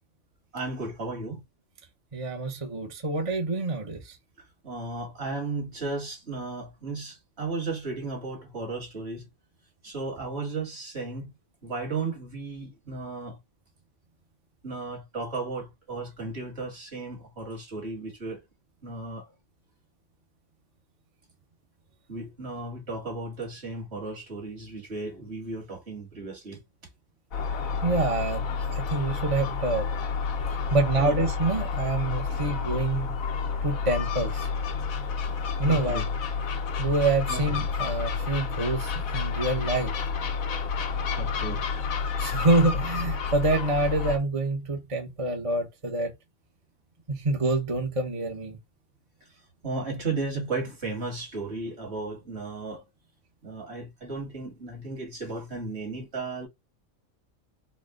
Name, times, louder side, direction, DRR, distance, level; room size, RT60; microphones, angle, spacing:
voice 1, 0.5-1.4 4.6-9.2 9.8-11.3 11.6-13.4 14.6-18.4 18.8-19.3 22.1-26.6 30.6-31.2 32.3-32.4 35.7-36.0 37.3-37.4 41.2-41.6 49.6-52.8 53.4-56.5, right 3 dB, 50° right, 2.0 m, -34 dB
voice 2, 2.1-4.2 27.8-29.9 30.7-33.2 33.6-34.5 35.6-36.1 36.8-39.9 42.2-46.1 47.1-48.6, right 2 dB, 30° right, 0.7 m, -27 dB
Gull seagull, 27.3-44.2, left 5 dB, 85° left, 1.3 m, -30 dB
4.1 x 2.2 x 3.6 m
omnidirectional pair, 1.4 m